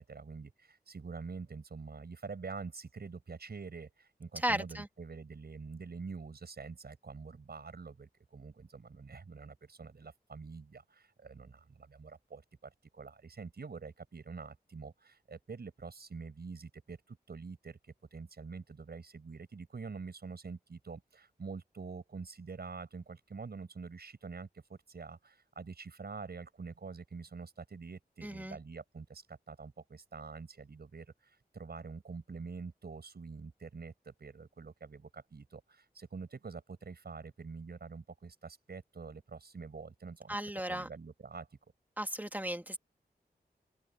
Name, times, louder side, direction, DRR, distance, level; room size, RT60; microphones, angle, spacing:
voice 1, 0.0-17.8 18.1-40.4 40.7-41.5, right 4 dB, 75° right, 6.7 m, -46 dB
voice 2, 4.4-4.9 28.2-28.6 40.3-40.9 42.0-42.8, right 1 dB, 10° right, 1.9 m, -35 dB
open air
wide cardioid pair, 65°, 16 cm